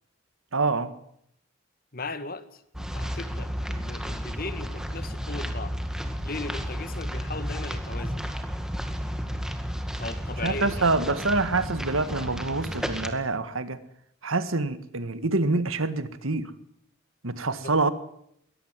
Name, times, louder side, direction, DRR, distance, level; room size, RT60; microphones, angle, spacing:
voice 1, 0.5-0.9 10.4-13.8 14.2-16.5 17.2-17.9, right 3 dB, 80° right, 1.8 m, -26 dB
voice 2, 1.9-5.7 6.2-8.3 10.0-10.9 17.6-17.7, left 3 dB, 45° left, 1.9 m, -37 dB
sound 1, 2.7-13.1, equal, 5° right, 2.0 m, -32 dB
23.0 x 18.5 x 7.6 m
head